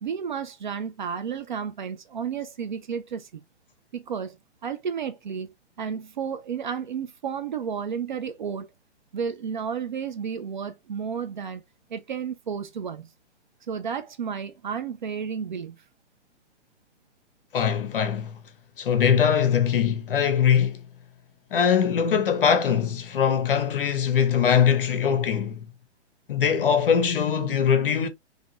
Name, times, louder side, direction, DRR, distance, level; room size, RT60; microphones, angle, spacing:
voice 1, 0.0-3.4 3.9-4.4 4.6-5.5 5.8-8.7 9.1-11.6 11.9-13.1 13.7-15.8, right 7 dB, 40° right, 0.5 m, -32 dB
voice 2, 17.5-18.4 18.8-20.8 21.5-25.7 26.3-28.1, left 7 dB, 50° left, 0.9 m, -22 dB
3.9 x 2.8 x 2.6 m
figure-of-eight pair, 125°, 36 cm